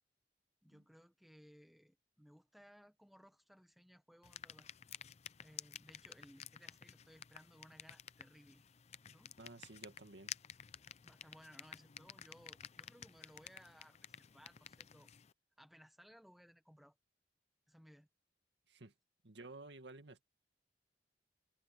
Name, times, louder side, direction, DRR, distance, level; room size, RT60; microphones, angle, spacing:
voice 1, 0.6-4.7 5.4-8.6 9.0-9.4 11.0-15.1 15.6-17.0 17.7-18.1, equal, ahead, 1.3 m, -62 dB
sound 1, 4.2-15.3, left 9 dB, 40° left, 0.5 m, -53 dB
voice 2, 9.4-10.4 18.7-18.9 19.2-20.2, right 2 dB, 80° right, 2.0 m, -53 dB
head